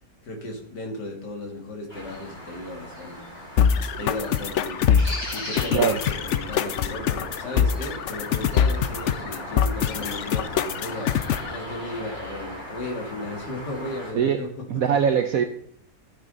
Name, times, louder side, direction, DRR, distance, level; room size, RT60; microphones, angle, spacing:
voice 1, 0.2-3.2 4.0-11.2 11.5-14.6, left 2 dB, 80° left, 1 dB, 2.9 m, -35 dB
sound 1, 1.9-14.1, left 1 dB, 35° left, 5.4 m, -38 dB
sound 2, 3.6-11.6, left 8 dB, 65° left, 0.7 m, -24 dB
voice 2, 14.7-15.4, right 7 dB, 65° right, 6 dB, 1.2 m, -22 dB
13.5 x 9.1 x 4.0 m, 0.66 s
omnidirectional pair, 1.8 m